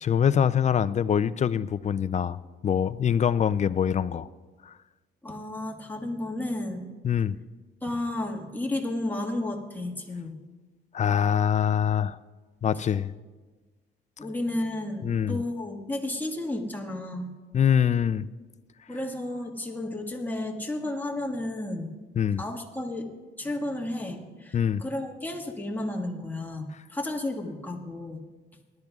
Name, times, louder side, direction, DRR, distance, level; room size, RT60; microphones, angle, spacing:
voice 1, 0.0-2.4 2.6-4.3 4.7-4.8 7.0-7.4 10.9-12.2 12.6-13.1 15.0-15.4 17.5-18.3 22.2-22.4 24.5-24.8, left 8 dB, 35° left, 16 dB, 0.4 m, -24 dB
voice 2, 5.2-6.9 7.8-10.4 14.2-17.3 18.9-21.9 22.4-23.1 23.4-28.2, left 1 dB, 10° left, 2 dB, 1.7 m, -32 dB
20.0 x 12.0 x 2.4 m, 1.3 s
cardioid pair, 90°, 20 cm